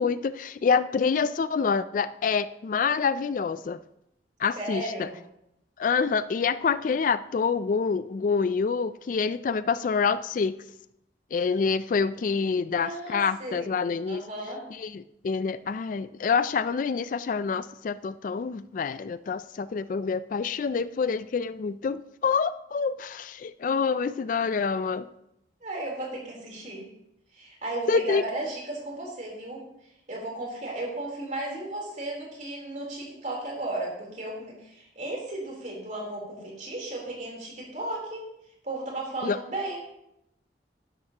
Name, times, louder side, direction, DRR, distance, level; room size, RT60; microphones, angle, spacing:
voice 1, 0.0-3.8 4.4-5.1 5.8-10.5 11.3-14.2 14.8-25.1 27.9-28.2 39.2-39.4, left 5 dB, 45° left, 15 dB, 0.3 m, -27 dB
voice 2, 4.6-5.2 12.7-13.7 14.1-14.6 25.6-26.9 27.3-29.6 30.1-38.2 38.6-39.8, right 2 dB, 45° right, -2 dB, 3.6 m, -35 dB
12.5 x 11.0 x 2.9 m, 0.81 s
head